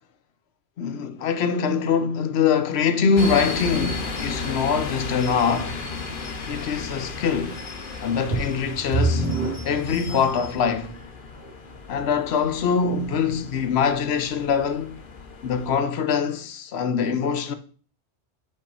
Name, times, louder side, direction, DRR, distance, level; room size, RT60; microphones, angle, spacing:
voice 1, 0.8-5.8 6.5-7.6 8.0-9.3 9.6-10.9 11.9-15.0 15.4-17.5, left 6 dB, 70° left, 1.0 m, -23 dB
sound 1, 3.2-15.8, left 3 dB, 50° left, 1.1 m, -35 dB
sound 2, 8.3-10.7 11.4-11.5 12.1-12.2, right 2 dB, 65° right, 2.4 m, -26 dB
5.4 x 4.6 x 5.5 m
omnidirectional pair, 1.1 m